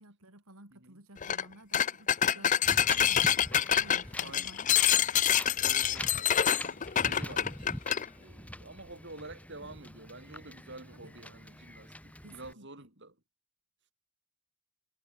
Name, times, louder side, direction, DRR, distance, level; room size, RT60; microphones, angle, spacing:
voice 1, 0.0-2.6 2.9-3.2 3.8-4.9 10.9-11.1 12.2-12.9, right 1 dB, 75° right, 5.7 m, -54 dB
voice 2, 0.7-1.0 4.2-4.5 5.6-13.2, right 2 dB, 50° right, 6.4 m, -49 dB
sound 1, 1.2-1.4 1.7-8.0, left 9 dB, 35° left, 0.6 m, -26 dB
Wind, 2.6-12.5, left 1 dB, 5° left, 4.8 m, -45 dB
head